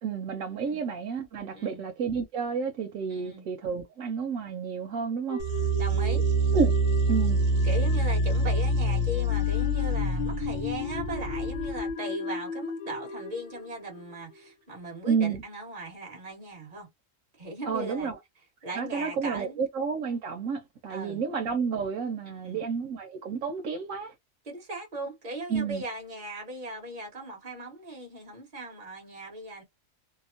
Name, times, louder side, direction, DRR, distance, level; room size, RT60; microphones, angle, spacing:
voice 1, 0.0-5.4 6.5-6.7 7.1-7.4 15.1-15.4 17.7-18.2 18.8-24.1 25.5-25.8, right 5 dB, 90° right, 1.1 m, -30 dB
voice 2, 3.1-3.4 5.8-6.3 7.6-16.9 17.4-18.1 18.6-19.6 20.9-21.2 22.3-22.6 24.4-29.6, right 1 dB, 35° right, 1.4 m, -38 dB
sound 1, 5.3-14.5, left 5 dB, 80° left, 1.1 m, -36 dB
sound 2, 5.4-11.9, right 1 dB, 70° right, 1.0 m, -26 dB
2.9 x 2.0 x 2.5 m
omnidirectional pair, 1.4 m